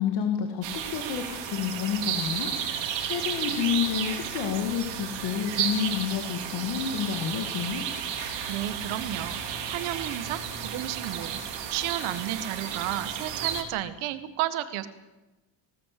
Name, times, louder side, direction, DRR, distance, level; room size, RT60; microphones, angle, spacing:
voice 1, 0.0-2.5 3.1-7.8, left 8 dB, 50° left, 5 dB, 2.3 m, -29 dB
sound 1, 0.6-13.6, right 8 dB, 60° right, 3.5 m, -33 dB
voice 2, 8.5-9.4 9.7-11.4 11.7-14.9, right 13 dB, 80° right, 11 dB, 1.8 m, -32 dB
20.5 x 18.0 x 8.5 m, 1.1 s
cardioid pair, 175°, 48 cm